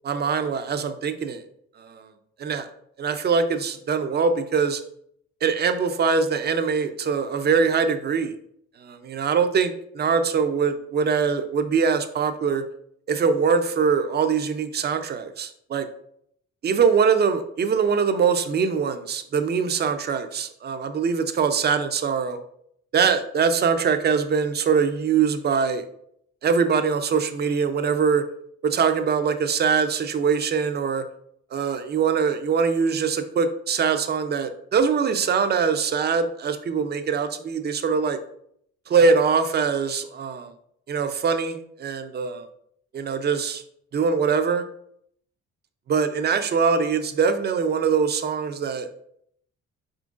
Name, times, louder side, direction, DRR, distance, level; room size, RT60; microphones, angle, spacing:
voice 1, 0.0-1.4 1.8-2.1 2.4-2.7 3.0-4.8 5.4-8.3 8.8-12.6 13.1-15.9 16.6-22.4 22.9-25.8 26.4-28.2 28.6-31.0 31.5-38.2 38.9-40.5 40.9-42.5 42.9-43.6 43.9-44.6 45.9-48.9, right 5 dB, 35° right, 8 dB, 0.5 m, -23 dB
4.4 x 3.7 x 2.4 m, 0.70 s
cardioid pair, 90°, 30 cm